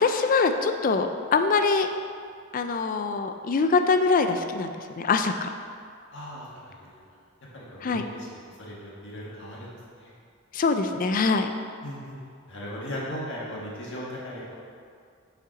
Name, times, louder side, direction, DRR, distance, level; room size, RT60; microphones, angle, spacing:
voice 1, 0.0-1.9 2.5-5.5 7.8-8.0 10.5-11.5, left 4 dB, 40° left, 7 dB, 0.4 m, -23 dB
voice 2, 6.1-6.9 7.5-8.3 8.6-9.7 10.0-10.1 11.8-12.1 12.5-14.5, equal, 60° left, -5 dB, 1.5 m, -37 dB
6.5 x 5.6 x 4.0 m, 2.3 s
head